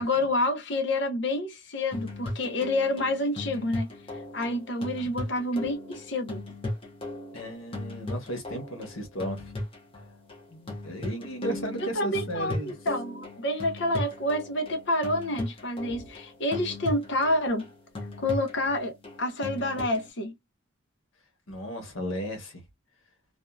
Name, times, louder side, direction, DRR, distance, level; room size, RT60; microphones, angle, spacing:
voice 1, 0.0-3.9 4.3-6.4 11.8-17.7 18.2-20.3, left 1 dB, 60° left, 0.9 m, -28 dB
sound 1, 1.9-20.1, left 1 dB, 25° left, 0.8 m, -37 dB
voice 2, 7.3-9.5 10.5-12.7 15.9-16.0 21.5-22.6, equal, 90° left, 1.2 m, -35 dB
2.6 x 2.4 x 2.2 m
head